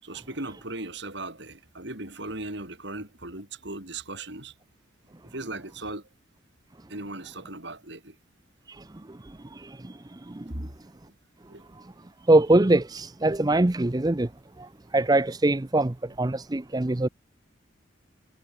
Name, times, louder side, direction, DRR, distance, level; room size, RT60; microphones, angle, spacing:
voice 1, 0.0-4.5 5.3-6.1 6.9-8.2 11.5-11.6, right 2 dB, 55° right, 5.4 m, -38 dB
voice 2, 9.6-9.9 10.3-10.4 12.3-14.3 14.9-17.1, right 2 dB, 20° right, 0.6 m, -22 dB
head